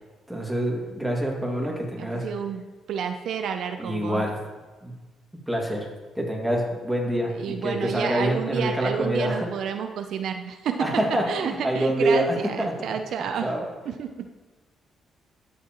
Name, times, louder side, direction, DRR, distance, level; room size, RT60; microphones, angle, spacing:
voice 1, 0.3-2.3 3.8-4.4 4.8-4.9 5.5-5.9 6.2-9.5 10.8-12.7 13.4-13.6, right 1 dB, 5° right, -1 dB, 2.0 m, -26 dB
voice 2, 2.0-4.2 7.3-13.5 13.9-14.3, right 7 dB, 70° right, 7 dB, 0.5 m, -30 dB
12.5 x 7.2 x 3.0 m, 1.3 s
cardioid pair, 90°, 0 cm